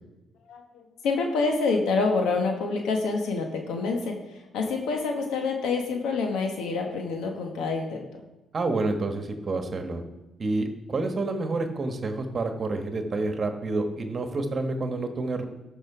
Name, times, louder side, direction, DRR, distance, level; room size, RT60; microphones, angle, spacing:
voice 1, 0.5-8.2, left 4 dB, 85° left, 3 dB, 1.2 m, -27 dB
voice 2, 8.5-10.0 10.4-15.4, right 2 dB, 40° right, 6 dB, 1.3 m, -28 dB
13.5 x 5.3 x 4.9 m, 1.0 s
cardioid pair, 90°, 0 cm